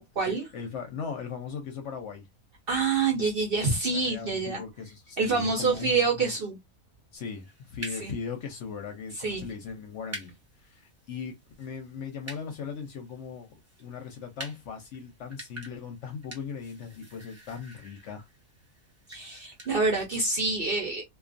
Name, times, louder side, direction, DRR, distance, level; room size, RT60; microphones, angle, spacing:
voice 1, 0.0-0.5 2.7-4.6 5.2-6.6 8.0-8.1 9.1-9.4 19.1-21.0, right 4 dB, 55° right, 0.7 m, -27 dB
voice 2, 0.5-2.3 3.9-6.0 7.1-10.3 10.6-18.3, left 6 dB, 65° left, 0.8 m, -38 dB
sound 1, 7.2-19.7, right 1 dB, 15° right, 0.5 m, -48 dB
2.4 x 2.3 x 2.5 m
omnidirectional pair, 1.5 m